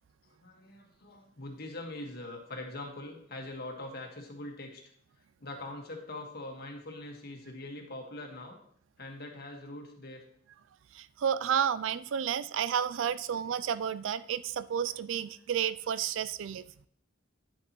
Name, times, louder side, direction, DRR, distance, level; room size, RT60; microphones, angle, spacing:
voice 1, 0.3-4.8 5.4-8.6 9.0-10.2 13.1-13.2, left 2 dB, 50° left, 2 dB, 1.7 m, -43 dB
voice 2, 10.9-16.7, right 8 dB, 70° right, 16 dB, 0.4 m, -31 dB
10.0 x 7.2 x 3.0 m, 0.63 s
head